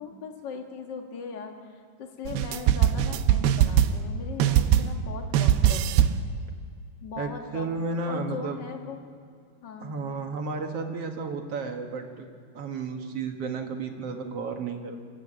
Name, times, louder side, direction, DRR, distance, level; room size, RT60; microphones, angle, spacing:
voice 1, 0.0-6.1 7.0-7.7 8.1-9.0 9.6-9.9, left 5 dB, 40° left, 3 dB, 1.7 m, -39 dB
sound 1, 2.3-4.1 4.4-5.1 5.3-6.3, right 10 dB, 90° right, 2.8 m, -22 dB
voice 2, 7.2-8.6 9.8-12.3 12.5-15.0, right 4 dB, 55° right, 4 dB, 1.9 m, -32 dB
24.0 x 14.0 x 8.9 m, 2.2 s
omnidirectional pair, 4.5 m